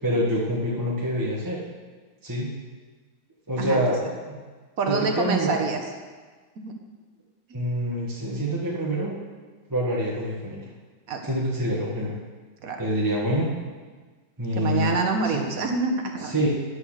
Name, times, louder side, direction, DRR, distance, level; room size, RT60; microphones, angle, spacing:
voice 1, 0.0-1.6 2.2-2.5 3.5-4.0 4.9-5.5 7.5-9.1 9.7-10.6 11.2-12.1 12.8-13.5 14.4-14.9 15.2-15.4 16.2-16.5, equal, 10° right, -6 dB, 1.3 m, -26 dB
voice 2, 3.6-4.1 4.8-5.8 6.6-6.7 11.1-11.3 12.6-12.8 14.5-16.3, right 4 dB, 50° right, 3 dB, 1.4 m, -26 dB
10.5 x 6.7 x 6.5 m, 1.4 s
omnidirectional pair, 2.2 m